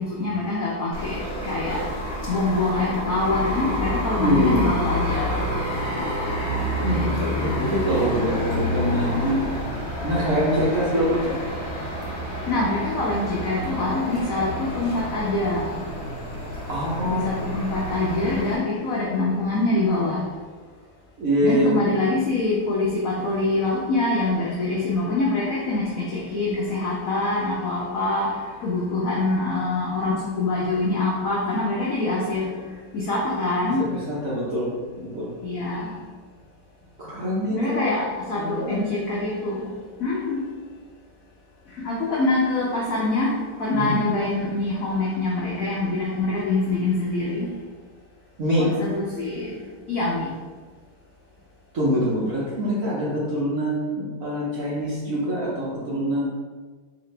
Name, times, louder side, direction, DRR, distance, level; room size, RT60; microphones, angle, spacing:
voice 1, 0.0-1.8 2.3-5.4 12.5-15.7 17.0-20.2 21.4-32.5 32.9-33.8 35.4-36.0 37.5-39.7 40.0-40.4 41.8-43.3 43.6-47.5 48.6-49.5 49.9-50.3, left 2 dB, 85° left, -5 dB, 0.7 m, -25 dB
sound 1, 0.9-18.6, equal, 45° left, 1.0 m, -29 dB
voice 2, 4.2-4.8 6.8-9.6 10.0-11.4 16.7-17.3 21.2-21.8 33.9-34.7 35.0-35.3 37.0-37.8 38.4-38.8 43.7-44.0 48.4-48.7 51.7-56.2, equal, 60° right, -7 dB, 0.9 m, -24 dB
4.0 x 2.9 x 3.2 m, 1.4 s
omnidirectional pair, 2.3 m